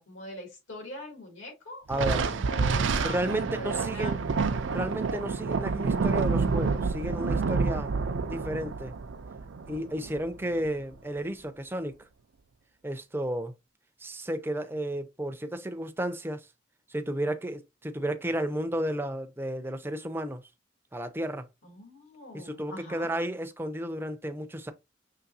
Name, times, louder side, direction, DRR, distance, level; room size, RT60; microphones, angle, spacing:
voice 1, 0.0-4.3 21.6-23.1, left 1 dB, 75° left, 2.5 m, -42 dB
voice 2, 1.9-2.3 3.0-4.2 4.7-7.9 8.2-8.9 9.7-12.1 12.8-13.5 14.0-16.5 16.9-20.4 20.9-21.5 22.3-24.7, right 1 dB, 10° right, 0.5 m, -33 dB
Thunder, 1.9-10.7, right 4 dB, 70° right, 0.4 m, -28 dB
5.8 x 3.2 x 2.6 m
head